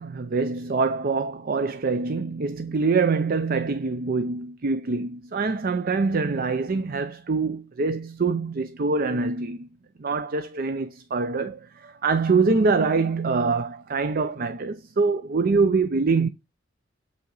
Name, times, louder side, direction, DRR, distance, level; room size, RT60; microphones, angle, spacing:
voice 1, 0.0-9.7 10.0-16.3, right 4 dB, 50° right, 0.5 m, -24 dB
7.8 x 5.7 x 3.9 m
head